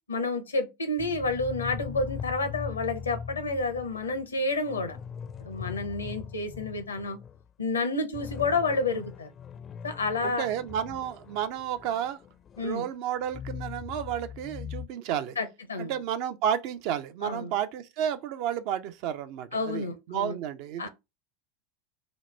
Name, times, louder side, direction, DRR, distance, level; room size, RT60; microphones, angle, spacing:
voice 1, 0.1-5.0 5.4-7.2 7.6-9.3 9.8-10.5 12.6-12.8 15.4-16.0 17.2-17.5 19.5-20.4 20.8-20.9, left 3 dB, 85° left, 0.6 m, -30 dB
sound 1, 1.0-7.4 7.7-7.8 8.1-12.7 13.2-14.9, left 7 dB, 30° left, 0.4 m, -41 dB
voice 2, 10.2-12.2 12.6-15.4 15.8-20.9, right 9 dB, 55° right, 0.4 m, -31 dB
2.9 x 2.0 x 3.2 m
figure-of-eight pair, 85°, 0 cm